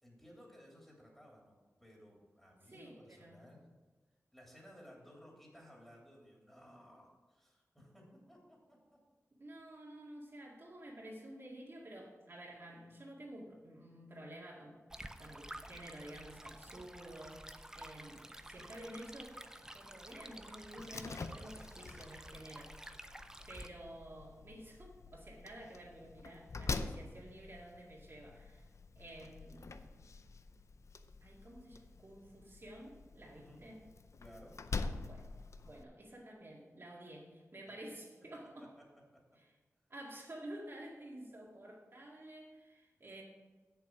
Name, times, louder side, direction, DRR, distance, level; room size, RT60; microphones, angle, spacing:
voice 1, 0.0-3.7 4.3-9.0 33.3-33.6 34.2-34.6 38.8-38.9 39.1-39.2, equal, 5° left, -2 dB, 2.9 m, -58 dB
voice 2, 2.7-3.6 9.4-14.8 15.2-17.4 17.7-22.8 23.5-28.6 29.0-29.9 31.2-33.9 35.0-35.3 35.6-38.7 39.9-43.2, right 1 dB, 50° right, -4 dB, 2.0 m, -51 dB
Stream, 14.9-23.7, right 1 dB, 10° right, 0.5 m, -51 dB
Slam, 20.8-35.8, left 4 dB, 70° left, 0.5 m, -46 dB
8.2 x 7.0 x 6.0 m, 1.3 s
wide cardioid pair, 95°, 5 cm